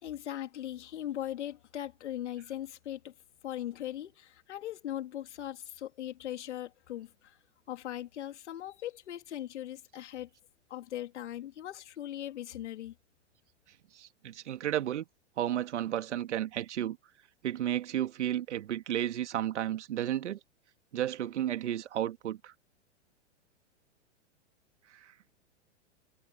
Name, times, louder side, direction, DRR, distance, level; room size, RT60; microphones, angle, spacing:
voice 1, 0.0-3.1 3.4-7.4 7.7-10.3 10.7-12.9, left 12 dB, 70° left, 3.3 m, -39 dB
voice 2, 13.9-15.0 15.4-17.0 17.4-20.4 20.9-22.5 24.9-25.1, right 11 dB, 70° right, 2.0 m, -33 dB
hypercardioid pair, 110°, 36 cm